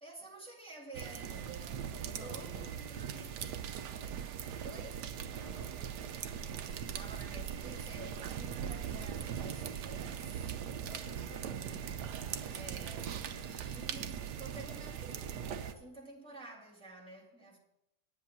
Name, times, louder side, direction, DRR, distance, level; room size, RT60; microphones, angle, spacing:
voice 1, 0.0-3.4 4.6-5.2 6.9-10.4 12.5-17.6, right 2 dB, 5° left, 2.1 m, -51 dB
sound 1, 0.9-15.7, right 8 dB, 85° right, 1.4 m, -40 dB
voice 2, 1.8-3.2 5.3-6.4 10.8-12.9, left 1 dB, 75° left, 3.2 m, -54 dB
10.5 x 9.1 x 5.6 m
omnidirectional pair, 1.7 m